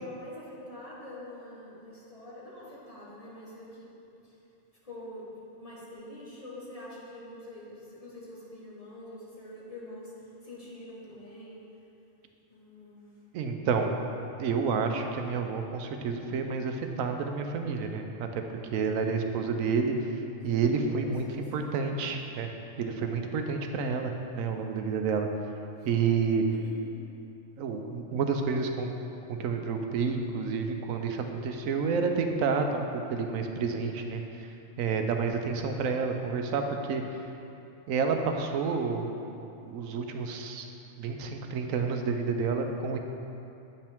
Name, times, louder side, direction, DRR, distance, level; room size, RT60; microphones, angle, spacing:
voice 1, 0.0-3.9 4.2-4.4 4.8-5.3 5.6-11.6 12.5-13.2 18.5-18.9 20.5-22.1 25.8-25.9 26.6-26.9, left 1 dB, 30° left, -6 dB, 1.2 m, -45 dB
voice 2, 13.3-14.0 14.4-18.4 18.7-22.5 22.8-25.3 25.8-26.5 27.6-28.9 29.3-34.5 34.8-37.2 37.9-39.1 39.6-40.7 41.0-43.0, right 5 dB, 85° right, 5 dB, 1.0 m, -29 dB
8.9 x 5.5 x 3.5 m, 2.8 s
omnidirectional pair, 1.4 m